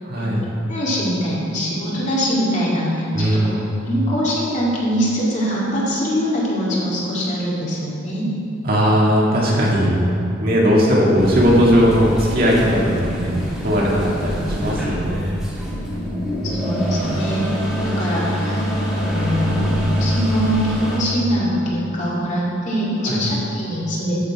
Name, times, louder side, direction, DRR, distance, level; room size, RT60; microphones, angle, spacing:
voice 1, 0.0-0.5 3.1-3.7 8.6-10.0 10.4-13.4 13.6-15.4 16.4-17.0 23.1-23.2, equal, 50° right, -5 dB, 2.1 m, -18 dB
voice 2, 0.6-3.4 3.8-8.3 15.8-17.5 17.8-18.7 18.9-24.2, equal, 40° left, -6 dB, 2.3 m, -23 dB
sound 1, 11.2-21.0, equal, ahead, 2.2 m, -24 dB
13.0 x 6.7 x 4.7 m, 2.7 s
head